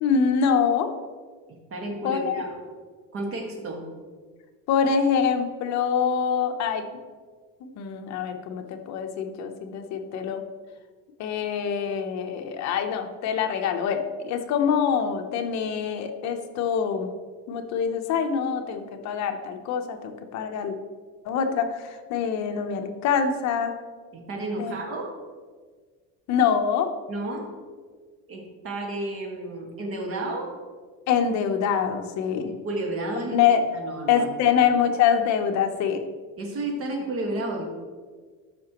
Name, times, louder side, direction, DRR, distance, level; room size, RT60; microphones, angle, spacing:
voice 1, 0.0-0.9 2.0-2.4 4.7-6.8 7.6-10.4 11.2-17.1 17.5-20.7 21.2-23.7 24.6-24.7 26.3-26.9 31.1-32.5 33.3-33.6 34.1-36.0, left 7 dB, 55° left, 6 dB, 0.8 m, -25 dB
voice 2, 1.7-2.5 3.1-3.8 24.1-25.1 27.1-27.5 28.3-30.5 32.5-34.6 36.4-37.6, right 2 dB, 40° right, 1 dB, 1.7 m, -32 dB
13.0 x 5.8 x 3.0 m, 1.5 s
cardioid pair, 150°, 34 cm